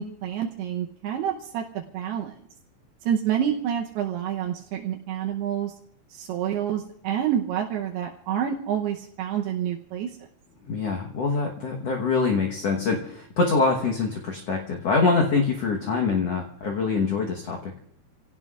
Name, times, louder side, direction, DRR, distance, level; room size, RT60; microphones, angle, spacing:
voice 1, 0.0-2.3 3.1-5.7 6.1-10.1, right 9 dB, 80° right, 1 dB, 2.9 m, -28 dB
voice 2, 10.7-17.7, left 4 dB, 65° left, 1 dB, 1.6 m, -24 dB
29.5 x 17.5 x 2.5 m, 0.68 s
omnidirectional pair, 4.7 m